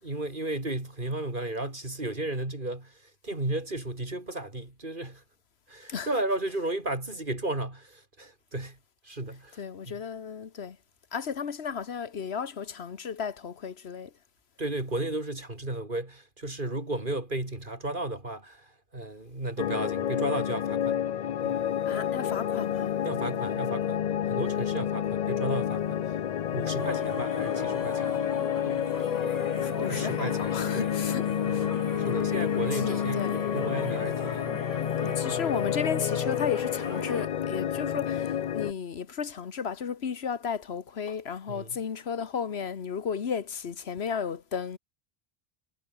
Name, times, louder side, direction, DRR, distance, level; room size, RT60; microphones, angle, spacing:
voice 1, 0.0-5.2 5.7-8.8 9.0-9.6 14.6-21.0 21.4-21.6 23.0-26.2 26.5-28.2 28.6-28.9 29.9-30.9 31.5-34.5 35.1-35.4 41.5-41.8, right 2 dB, 50° right, 4.6 m, -34 dB
voice 2, 9.6-10.8 11.1-14.1 21.8-22.9 28.9-31.7 32.7-33.4 35.0-44.8, left 6 dB, 80° left, 1.4 m, -34 dB
sound 1, 19.6-38.7, left 9 dB, 50° left, 0.5 m, -29 dB
sound 2, 26.8-37.3, left 1 dB, 20° left, 3.3 m, -40 dB
omnidirectional pair, 1.1 m